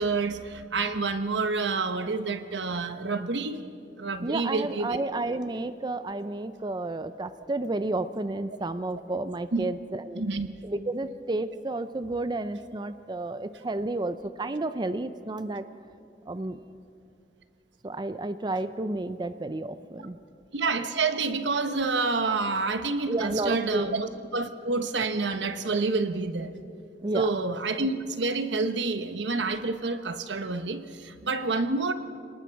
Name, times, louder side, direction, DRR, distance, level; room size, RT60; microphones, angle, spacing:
voice 1, 0.0-3.6 4.0-5.0 9.5-9.7 10.2-10.5 20.5-26.5 27.1-31.9, right 3 dB, 85° right, 9 dB, 1.1 m, -28 dB
voice 2, 4.2-10.2 10.6-15.6 16.3-16.6 17.8-20.2 23.1-23.9 27.0-27.3, right 2 dB, 25° right, 12 dB, 0.5 m, -31 dB
29.5 x 19.0 x 4.6 m, 2.5 s
head